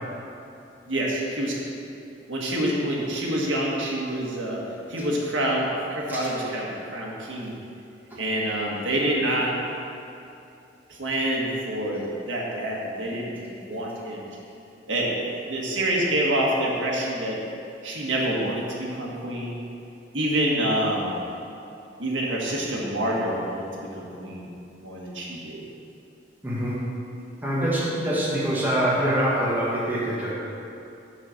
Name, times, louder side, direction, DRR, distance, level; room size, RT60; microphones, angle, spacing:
voice 1, 0.8-1.6 2.3-7.5 8.2-9.5 10.9-14.2 14.9-15.1 15.5-17.4 17.8-19.5 20.1-21.2 22.0-24.5 24.8-25.6, right 1 dB, 85° right, -4 dB, 1.5 m, -27 dB
voice 2, 26.4-26.8 27.4-30.3, right 1 dB, 10° right, -7 dB, 1.4 m, -24 dB
6.4 x 5.8 x 6.5 m, 2.7 s
head